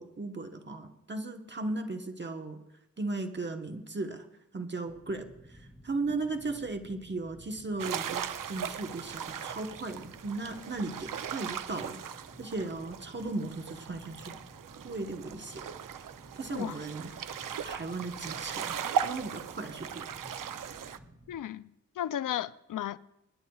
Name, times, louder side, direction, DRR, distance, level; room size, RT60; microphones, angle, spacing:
voice 1, 0.0-2.6 3.0-4.3 4.5-14.4 14.8-15.6 16.4-17.1 17.6-20.0, right 3 dB, 35° right, 1.2 m, -37 dB
sound 1, 4.8-21.4, equal, 5° right, 2.2 m, -54 dB
sound 2, 7.8-21.0, right 8 dB, 75° right, 0.7 m, -38 dB
voice 2, 21.3-21.6 22.0-23.0, left 11 dB, 75° left, 0.5 m, -34 dB
25.0 x 11.0 x 2.4 m
wide cardioid pair, 90°, 32 cm